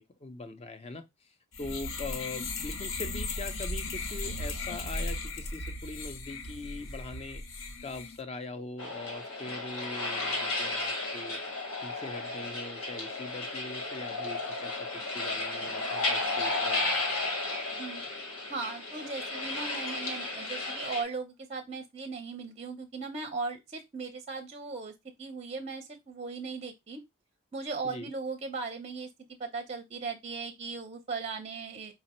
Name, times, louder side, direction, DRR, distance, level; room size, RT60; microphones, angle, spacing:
voice 1, 0.0-7.4 7.8-11.4 11.8-17.0 27.8-28.1, left 2 dB, 25° left, 0.5 m, -42 dB
sound 1, 1.5-8.2, left 2 dB, 60° left, 0.7 m, -36 dB
sound 2, 8.8-21.0, left 2 dB, 80° left, 1.1 m, -33 dB
voice 2, 18.5-24.9 25.2-27.0 27.5-31.9, right 4 dB, 30° right, 0.5 m, -38 dB
5.0 x 2.0 x 4.1 m
head